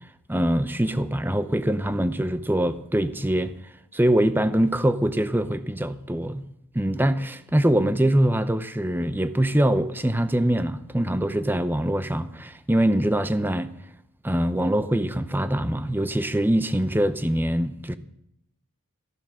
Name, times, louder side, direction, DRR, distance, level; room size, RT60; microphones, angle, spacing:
voice 1, 0.3-3.5 3.9-6.4 6.7-13.7 14.2-18.0, right 1 dB, 10° right, 0.7 m, -23 dB
15.0 x 11.0 x 6.3 m
head